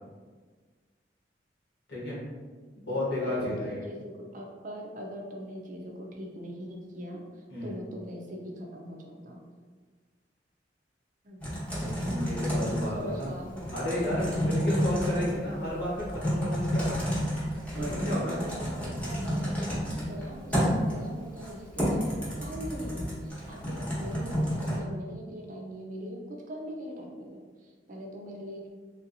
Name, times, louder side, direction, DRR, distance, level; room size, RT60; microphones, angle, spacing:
voice 1, 1.9-2.2 2.8-3.8 7.5-7.7 11.8-13.3 13.7-17.1 17.8-18.4, left 1 dB, 75° left, -7 dB, 1.4 m, -32 dB
voice 2, 3.2-9.4 11.2-11.4 12.5-13.7 17.7-19.6 20.0-28.7, equal, 45° right, 0 dB, 0.5 m, -41 dB
Typing, 11.4-24.8, equal, 10° left, 0.9 m, -31 dB
3.3 x 2.7 x 2.6 m, 1.5 s
head